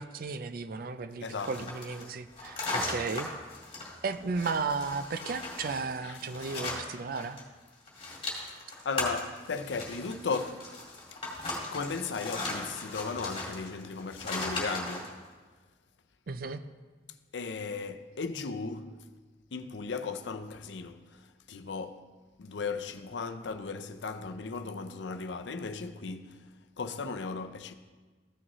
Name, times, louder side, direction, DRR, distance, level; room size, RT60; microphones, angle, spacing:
voice 1, 0.0-3.3 4.0-7.4 16.3-16.6, right 4 dB, 55° right, 0.5 m, -34 dB
voice 2, 1.2-1.7 6.0-6.2 8.1-8.2 8.6-10.7 11.7-15.1 17.3-19.0 19.5-21.0 21.5-22.0 22.4-26.5 26.8-27.7, left 4 dB, 90° left, 0.6 m, -36 dB
sound 1, 1.3-7.4 7.7-15.1, left 2 dB, 30° left, 2.1 m, -38 dB
14.5 x 6.2 x 3.1 m
head